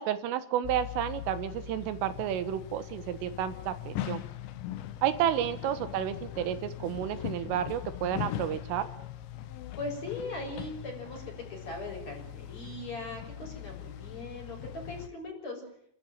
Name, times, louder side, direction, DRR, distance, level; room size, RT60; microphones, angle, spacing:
voice 1, 0.0-4.2 5.0-8.9, right 10 dB, 80° right, 11 dB, 3.8 m, -31 dB
sound 1, 0.6-15.1, left 11 dB, 70° left, 3.2 m, -40 dB
voice 2, 9.8-15.6, left 2 dB, 35° left, 0 dB, 7.6 m, -40 dB
29.5 x 13.5 x 9.2 m, 0.69 s
omnidirectional pair, 5.7 m